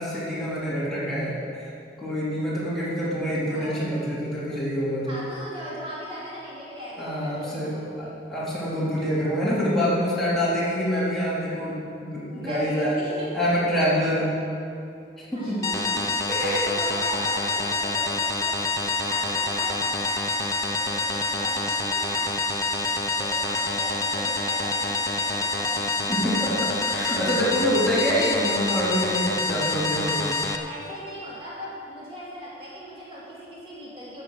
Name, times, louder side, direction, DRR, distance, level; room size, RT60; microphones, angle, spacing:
voice 1, 0.0-1.7 2.0-5.2 7.0-13.0 13.3-14.3 15.2-15.6 16.3-16.6 26.1-30.2, equal, ahead, -10 dB, 3.4 m, -26 dB
voice 2, 3.0-3.9 5.0-8.1 12.3-13.3 15.3-22.3 22.7-25.9 29.5-34.2, equal, 30° right, -8 dB, 2.9 m, -39 dB
sound 1, 15.6-30.6, left 3 dB, 20° left, 0.7 m, -27 dB
13.0 x 8.2 x 6.5 m, 2.6 s
head